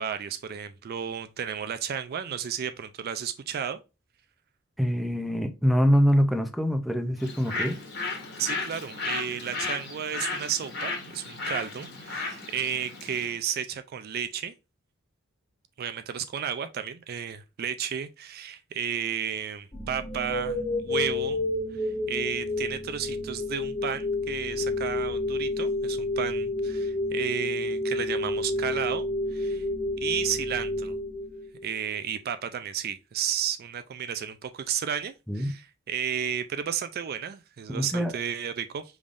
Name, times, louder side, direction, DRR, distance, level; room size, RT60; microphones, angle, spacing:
voice 1, 0.0-3.8 8.4-14.5 15.8-20.6 20.9-21.4 21.8-29.1 29.3-29.6 30.0-31.0 31.6-38.8, right 8 dB, 50° right, 0.4 m, -33 dB
voice 2, 4.8-7.8 35.3-35.5 37.7-38.2, equal, ahead, 0.6 m, -24 dB
Bird, 7.2-13.3, left 3 dB, 55° left, 1.7 m, -34 dB
sound 1, 19.7-31.8, left 2 dB, 25° left, 1.5 m, -30 dB
5.2 x 3.5 x 2.5 m
head